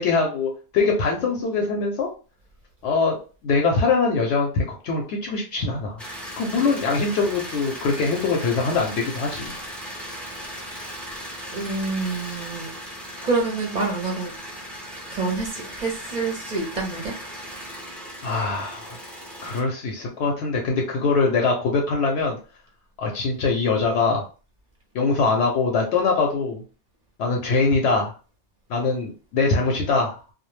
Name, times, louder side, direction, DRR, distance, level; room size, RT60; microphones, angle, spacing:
voice 1, 0.0-2.1 2.8-3.2 3.4-6.0 6.4-9.5 18.2-19.0 19.4-22.4 23.0-24.2 24.9-26.6 27.2-28.1 28.7-30.2, left 4 dB, 70° left, 1 dB, 0.8 m, -23 dB
sound 1, 6.0-19.6, equal, ahead, 0.3 m, -37 dB
voice 2, 11.5-12.7 13.2-14.3 15.1-17.1, right 3 dB, 45° right, 0 dB, 0.6 m, -27 dB
2.2 x 2.0 x 3.0 m, 0.35 s
omnidirectional pair, 1.2 m